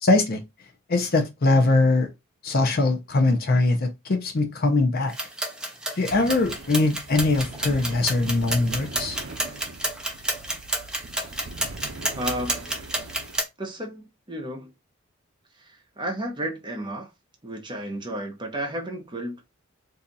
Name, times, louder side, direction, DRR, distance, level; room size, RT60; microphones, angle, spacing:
voice 1, 0.0-0.4 0.9-2.1 2.4-5.1 6.0-9.2, left 2 dB, 45° left, 0.6 m, -22 dB
sound 1, 5.1-13.4, right 1 dB, 5° right, 0.4 m, -31 dB
sound 2, 6.1-13.4, right 2 dB, 75° right, 0.6 m, -41 dB
voice 2, 12.2-12.8 13.6-14.7 15.5-17.1 17.4-19.4, right 1 dB, 20° right, 0.8 m, -33 dB
2.7 x 2.4 x 3.9 m
head